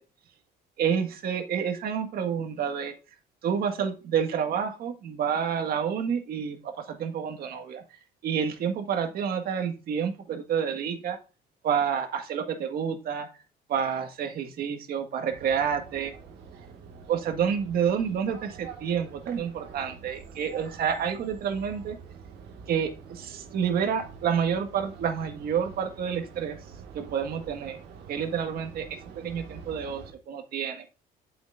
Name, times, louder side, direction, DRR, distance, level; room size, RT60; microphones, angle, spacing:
voice 1, 0.8-2.9 3.4-7.8 8.2-11.2 11.6-13.3 13.7-16.1 17.1-22.0 22.7-26.6 26.9-27.8 28.1-28.9 29.1-30.9, right 7 dB, 65° right, 5 dB, 1.8 m, -29 dB
sound 1, 15.3-30.1, right 6 dB, 85° right, 1.9 m, -46 dB
8.7 x 7.0 x 2.6 m, 0.32 s
cardioid pair, 110°, 17 cm